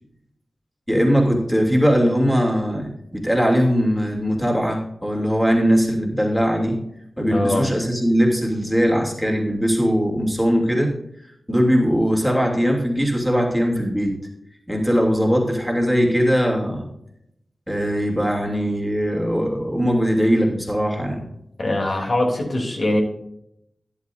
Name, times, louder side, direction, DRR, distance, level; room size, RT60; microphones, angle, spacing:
voice 1, 0.9-6.8 7.2-10.9 11.5-14.1 14.7-16.9 17.7-21.3, equal, ahead, 0 dB, 2.8 m, -20 dB
voice 2, 7.3-7.7 21.6-23.0, left 1 dB, 60° left, 0 dB, 3.1 m, -22 dB
13.0 x 10.5 x 2.6 m, 0.77 s
wide cardioid pair, 75°, 0 cm